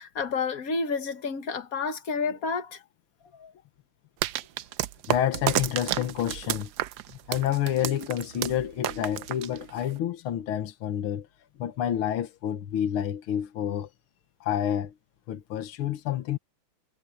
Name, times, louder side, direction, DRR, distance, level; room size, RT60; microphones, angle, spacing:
voice 1, 0.0-2.8 3.4-3.5, left 4 dB, 45° left, 1.8 m, -30 dB
sound 1, 4.2-10.0, right 13 dB, 75° right, 0.9 m, -31 dB
voice 2, 5.1-6.7 7.3-11.3 11.6-13.9 14.4-14.9 15.3-16.4, left 10 dB, 80° left, 2.0 m, -29 dB
omnidirectional pair, 2.3 m